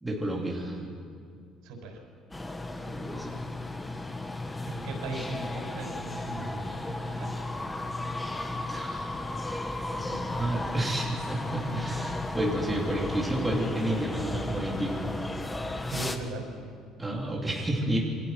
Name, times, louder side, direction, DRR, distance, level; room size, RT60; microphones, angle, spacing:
voice 1, 0.0-0.8 2.8-3.4 8.7-9.2 9.9-15.0 17.0-18.0, right 1 dB, 10° right, -3 dB, 3.7 m, -31 dB
voice 2, 1.6-2.0 4.7-6.7 7.0-7.3 15.9-16.4, right 3 dB, 90° right, 2 dB, 6.3 m, -38 dB
sound 1, 2.3-16.2, left 2 dB, 10° left, 1.2 m, -34 dB
28.5 x 24.0 x 6.1 m, 2.2 s
cardioid pair, 165°, 0 cm